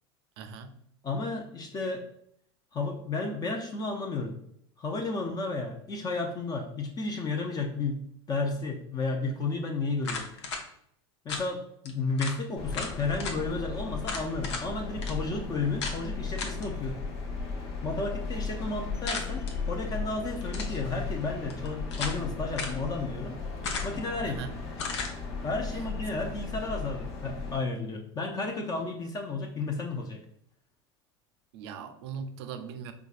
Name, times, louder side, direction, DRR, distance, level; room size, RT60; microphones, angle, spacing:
voice 1, 0.4-0.8 24.2-24.5 31.5-32.9, right 6 dB, 70° right, 0.5 m, -40 dB
voice 2, 1.0-2.1 2.7-4.4 4.8-10.3 11.2-17.0 17.8-23.4 23.8-24.5 25.4-30.2, left 3 dB, 25° left, 0.5 m, -32 dB
sound 1, 10.0-10.6 11.3-11.5 11.9-12.0 12.2-12.4 12.7-13.4 14.0-14.7 15.0-15.1 15.8-16.0 16.4-16.7 19.1-19.5 20.4-20.8 21.5-22.2 22.6-22.8 23.6-24.1 24.8-25.1, left 4 dB, 85° left, 0.6 m, -35 dB
sound 2, 12.6-27.6, left 4 dB, 50° left, 0.9 m, -36 dB
4.6 x 2.3 x 2.4 m
hypercardioid pair, 100°, 14 cm